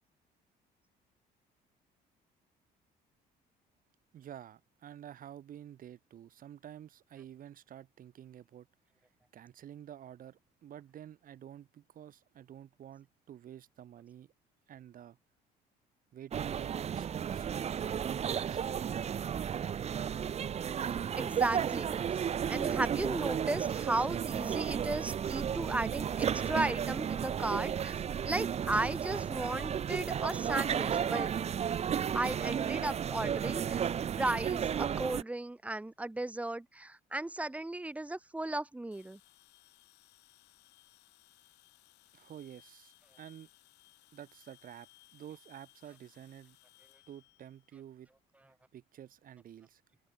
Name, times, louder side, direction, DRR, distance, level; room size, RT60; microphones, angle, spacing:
voice 1, 4.1-8.7 9.3-14.3 14.7-15.2 16.1-17.5 18.3-19.0 42.1-43.5 44.1-46.6 47.1-48.1 48.7-49.8, right 10 dB, 55° right, 3.3 m, -50 dB
sound 1, 16.3-35.2, right 8 dB, 40° right, 0.9 m, -33 dB
voice 2, 21.2-22.0 22.5-28.0 28.2-31.3 32.1-33.8 34.2-39.2, right 2 dB, 10° right, 0.7 m, -35 dB
sound 2, 38.9-48.2, left 19 dB, 85° left, 7.6 m, -63 dB
cardioid pair, 110°, 17 cm